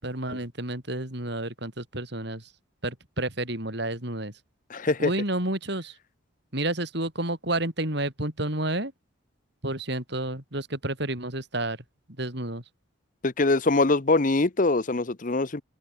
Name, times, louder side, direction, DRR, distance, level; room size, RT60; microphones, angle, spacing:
voice 1, 0.0-2.5 2.8-4.3 5.0-6.0 6.5-8.9 9.6-11.8 12.2-12.6, right 1 dB, 55° right, 5.9 m, -30 dB
voice 2, 4.7-5.1 13.2-15.6, left 3 dB, 40° left, 0.8 m, -23 dB
open air
head